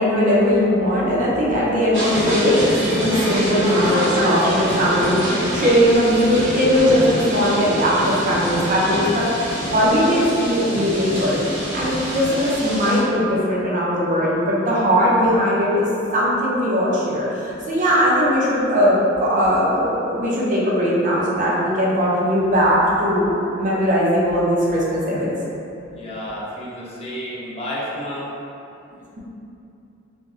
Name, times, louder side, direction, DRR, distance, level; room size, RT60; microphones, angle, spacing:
voice 1, 0.0-11.4 11.7-15.9 16.1-25.3, equal, 40° right, -6 dB, 0.5 m, -19 dB
sound 1, 1.9-13.0, equal, 15° right, 1.0 m, -25 dB
voice 2, 26.0-28.3, equal, 30° left, -6 dB, 0.5 m, -31 dB
2.5 x 2.0 x 3.4 m, 2.7 s
head